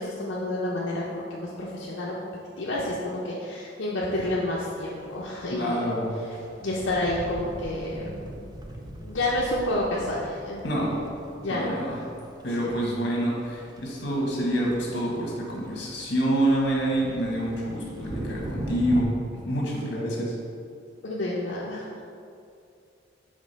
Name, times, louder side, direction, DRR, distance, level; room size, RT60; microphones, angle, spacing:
voice 1, 0.0-2.3 2.6-8.1 9.0-10.6 11.4-11.9 12.5-12.8 21.0-22.0, left 1 dB, 85° left, -5 dB, 0.7 m, -30 dB
sound 1, 4.8-19.0, right 1 dB, 20° right, 0.4 m, -41 dB
voice 2, 5.5-6.1 10.6-10.9 11.5-12.0 12.4-19.1 19.4-20.3, right 1 dB, 65° left, -3 dB, 1.5 m, -27 dB
5.2 x 3.6 x 5.3 m, 2.5 s
head